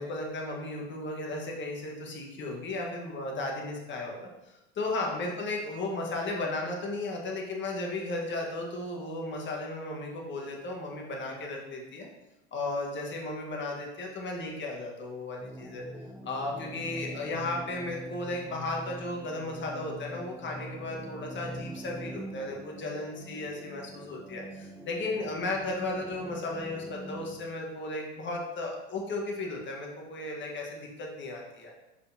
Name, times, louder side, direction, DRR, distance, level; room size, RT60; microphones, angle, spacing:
voice 1, 0.0-12.1 12.5-15.8 16.2-31.7, left 2 dB, 30° left, -1 dB, 1.5 m, -35 dB
sound 1, 15.4-27.4, right 1 dB, 5° right, 0.5 m, -43 dB
6.5 x 5.1 x 2.9 m, 1.0 s
hypercardioid pair, 90°, 36 cm